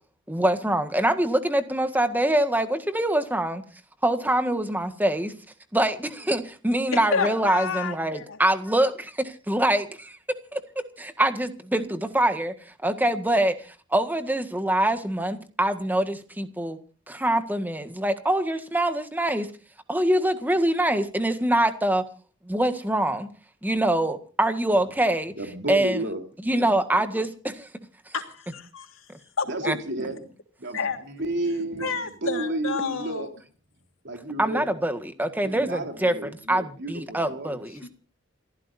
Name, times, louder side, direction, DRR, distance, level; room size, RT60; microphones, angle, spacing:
voice 1, 0.3-3.6 4.0-5.3 5.7-10.2 10.5-10.6 11.0-13.6 13.9-16.8 17.1-19.5 19.9-22.0 22.4-23.3 23.6-25.3 25.7-26.0 26.4-27.7 29.6-29.7 34.4-36.1 36.5-37.8, right 1 dB, 10° right, 1.7 m, -24 dB
voice 2, 6.9-8.4 28.1-29.0 29.4-29.7 30.7-31.0 31.8-33.3 37.8-37.9, left 5 dB, 85° left, 3.2 m, -30 dB
voice 3, 25.4-26.2 29.5-30.2 30.6-33.3 34.0-34.7 35.4-37.6, right 1 dB, 60° right, 3.7 m, -32 dB
28.5 x 15.0 x 2.7 m
head